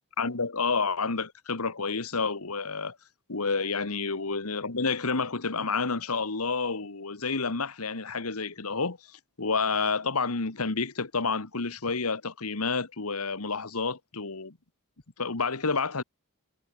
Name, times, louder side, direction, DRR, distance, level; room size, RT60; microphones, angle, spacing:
voice 1, 0.2-3.0 3.3-14.5 15.2-16.0, left 4 dB, 80° left, 1.7 m, -29 dB
head